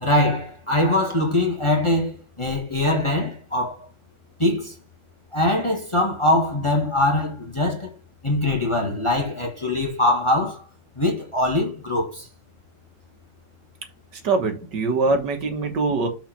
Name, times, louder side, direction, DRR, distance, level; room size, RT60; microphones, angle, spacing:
voice 1, 0.0-3.8 4.4-4.7 5.3-7.9 8.2-10.6 11.0-12.3, left 1 dB, 15° left, 1.4 m, -22 dB
voice 2, 14.2-16.1, right 3 dB, 70° right, 1.9 m, -23 dB
6.0 x 4.9 x 5.8 m
omnidirectional pair, 2.0 m